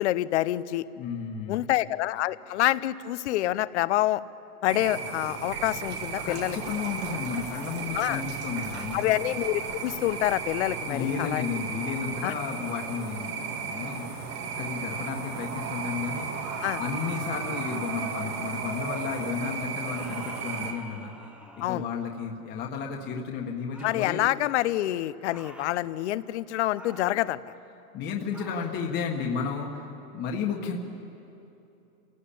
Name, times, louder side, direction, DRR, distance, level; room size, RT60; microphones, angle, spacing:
voice 1, 0.0-0.9 1.5-4.2 4.6-6.6 7.9-8.2 8.9-11.4 12.2-12.3 16.6-16.8 21.6-21.9 23.8-27.5, left 15 dB, 50° left, 17 dB, 0.7 m, -27 dB
voice 2, 1.0-1.6 6.2-9.1 10.9-14.2 14.6-21.1 21.7-24.2 27.9-30.8, left 6 dB, 25° left, 0 dB, 1.5 m, -33 dB
sound 1, 4.7-20.7, right 6 dB, 80° right, 3.1 m, -35 dB
sound 2, 5.4-12.2, right 4 dB, 25° right, 1.4 m, -46 dB
sound 3, 16.4-18.7 19.8-22.1 23.7-24.1 25.3-25.8 26.7-27.3 28.3-28.8, right 1 dB, 5° right, 0.7 m, -46 dB
27.5 x 17.5 x 8.6 m, 2.9 s
supercardioid pair, 160°, 45 cm